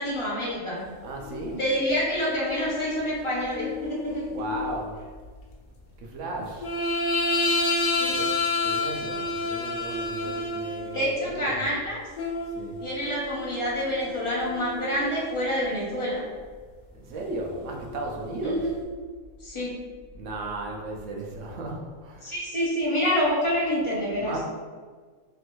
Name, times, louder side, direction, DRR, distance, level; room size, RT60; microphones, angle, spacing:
voice 1, 0.0-0.9 1.5-4.2 8.0-8.2 10.2-10.3 10.9-12.0 12.8-16.2 18.4-18.7 19.4-19.7 22.2-24.3, equal, 35° left, -7 dB, 0.5 m, -27 dB
voice 2, 1.0-1.7 4.3-5.0 6.0-6.7 8.1-8.3 8.6-11.7 12.5-12.8 16.9-18.8 20.1-22.4 24.2-24.4, right 2 dB, 70° right, 0 dB, 0.8 m, -35 dB
sound 1, 1.2-1.8 2.4-4.8 6.6-11.2 12.2-15.7 17.4-18.8, left 2 dB, 80° left, 0.4 m, -30 dB
3.1 x 2.5 x 2.9 m, 1.5 s
omnidirectional pair, 1.5 m